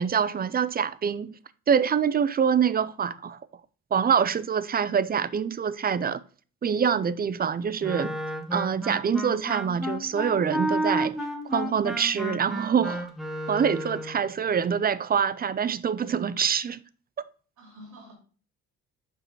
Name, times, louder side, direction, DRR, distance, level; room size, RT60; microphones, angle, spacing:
voice 1, 0.0-1.3 1.7-3.4 3.9-6.2 6.6-8.2 8.5-11.2 11.5-13.1 13.5-16.8, right 7 dB, 30° right, 0.4 m, -25 dB
Wind instrument woodwind instrument, 7.8-14.2, equal, ahead, 1.3 m, -31 dB
voice 2, 17.6-18.1, equal, 75° right, 2.4 m, -48 dB
5.6 x 5.0 x 4.6 m
cardioid pair, 90°, 30 cm